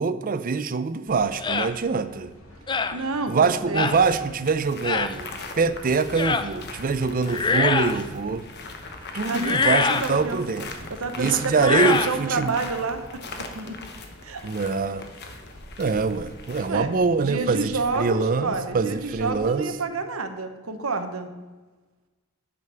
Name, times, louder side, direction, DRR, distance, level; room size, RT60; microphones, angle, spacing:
voice 1, 0.0-2.3 3.3-8.5 9.1-10.9 11.2-12.5 14.4-15.0 15.8-19.7, right 4 dB, 40° right, 12 dB, 0.5 m, -24 dB
sound 1, 1.1-19.3, left 1 dB, 75° left, 1.6 m, -49 dB
sound 2, 1.4-1.7 2.7-3.0 3.8-4.0 4.8-5.1 6.2-6.5 7.3-8.0 9.4-10.1 11.5-12.2, left 4 dB, 20° left, 0.4 m, -23 dB
voice 2, 2.9-3.9 9.3-10.4 11.0-13.0 13.4-13.8 14.2-14.5 16.7-16.9 17.2-21.3, right 3 dB, 85° right, 7 dB, 1.0 m, -29 dB
sound 3, 3.8-16.7, left 3 dB, 50° left, 1.1 m, -40 dB
9.6 x 5.2 x 6.8 m, 1.3 s
head